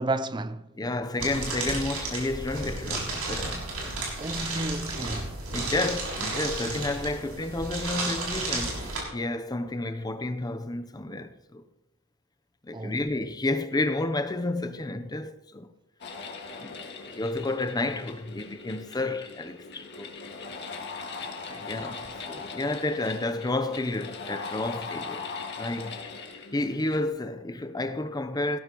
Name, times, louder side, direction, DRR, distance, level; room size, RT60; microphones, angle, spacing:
voice 1, 0.0-0.7 4.2-5.3 12.7-13.0 21.5-21.7, right 2 dB, 20° right, 0.5 m, -32 dB
voice 2, 0.8-4.0 5.5-11.6 12.6-15.7 16.6-20.2 20.4-20.5 21.6-26.0 26.5-28.6, left 2 dB, 20° left, 0.7 m, -31 dB
sound 1, 1.2-9.0, right 2 dB, 90° right, 6.5 m, -32 dB
sound 2, 16.0-27.0, left 4 dB, 55° left, 2.0 m, -40 dB
18.5 x 16.0 x 3.0 m
head